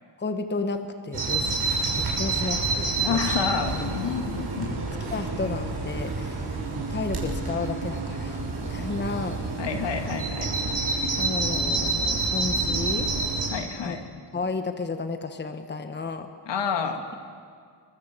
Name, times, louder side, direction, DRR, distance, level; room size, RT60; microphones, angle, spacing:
voice 1, 0.2-1.7 1.9-3.4 5.1-6.5 6.7-8.4 8.7-9.4 11.2-13.1 13.8-14.0 14.3-16.3, left 3 dB, 25° left, 7 dB, 1.3 m, -32 dB
Bird vocalization bird call bird song, 1.1-13.5, right 3 dB, 60° right, 6.4 m, -28 dB
voice 2, 3.0-4.8 9.6-10.5 10.8-11.2 13.5-14.1 16.5-17.1, left 6 dB, 70° left, 5 dB, 2.4 m, -29 dB
24.5 x 21.5 x 7.6 m, 2.1 s
cardioid pair, 105°, 44 cm